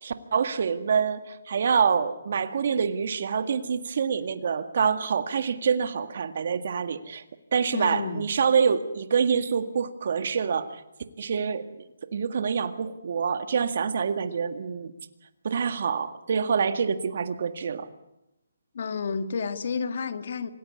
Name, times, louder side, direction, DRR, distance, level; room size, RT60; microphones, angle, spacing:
voice 1, 0.0-7.2 7.5-10.8 11.2-11.7 12.1-14.9 15.4-17.9, right 6 dB, 55° right, 9 dB, 1.9 m, -26 dB
voice 2, 7.7-8.3 18.7-20.5, left 5 dB, 55° left, 9 dB, 2.0 m, -30 dB
26.5 x 18.5 x 9.6 m, 0.92 s
hypercardioid pair, 160°, 0 cm